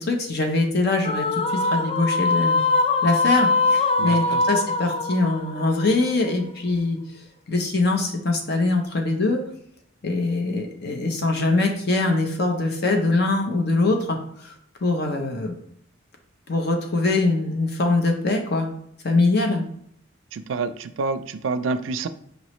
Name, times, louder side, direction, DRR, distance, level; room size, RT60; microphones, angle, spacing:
voice 1, 0.0-2.6 3.0-7.0 7.5-9.4 10.0-14.5 14.8-15.6 16.5-18.7 19.0-19.6, left 2 dB, 55° left, 3 dB, 0.7 m, -23 dB
sound 1, 1.0-6.5, left 3 dB, 30° left, 0.3 m, -22 dB
voice 2, 4.0-4.4 20.3-22.1, right 4 dB, 75° right, 12 dB, 0.4 m, -28 dB
5.1 x 3.1 x 3.0 m, 0.68 s
head